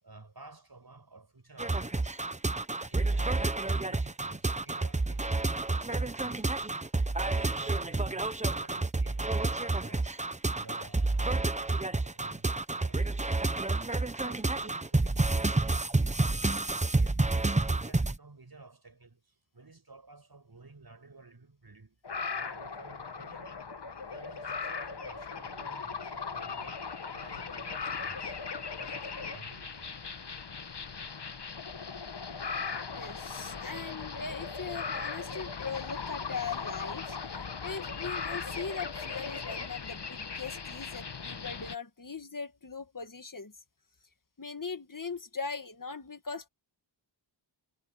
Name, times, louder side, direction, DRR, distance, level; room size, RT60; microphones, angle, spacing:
voice 1, 0.0-5.5 5.9-6.7 7.2-10.1 10.5-17.2 17.7-22.0 22.4-23.5 24.1-29.9, right 3 dB, 55° right, 6.9 m, -53 dB
sound 1, 1.6-18.2, right 2 dB, 15° right, 0.8 m, -29 dB
sound 2, 22.0-41.8, left 5 dB, 60° left, 1.5 m, -38 dB
voice 2, 32.9-43.5 44.4-46.5, left 5 dB, 45° left, 1.9 m, -40 dB
wide cardioid pair, 80°, 45 cm